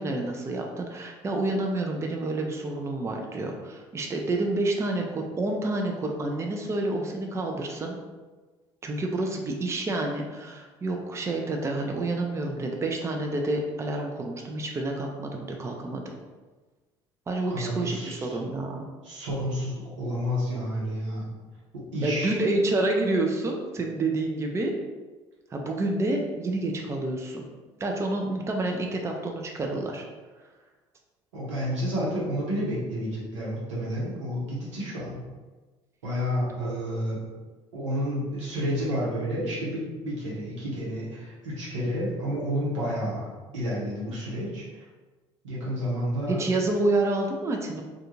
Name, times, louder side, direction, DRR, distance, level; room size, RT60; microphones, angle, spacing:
voice 1, 0.0-8.0 8.8-16.0 17.3-18.9 22.0-24.7 25.5-27.5 27.8-30.0 46.3-47.8, right 2 dB, 20° right, 2 dB, 0.4 m, -28 dB
voice 2, 17.5-18.4 19.0-21.3 21.7-22.4 31.3-35.2 36.0-37.2 37.7-43.3 43.5-44.6 45.4-46.4, equal, 90° right, -6 dB, 0.9 m, -30 dB
2.4 x 2.3 x 2.9 m, 1.3 s
hypercardioid pair, 65°, 15 cm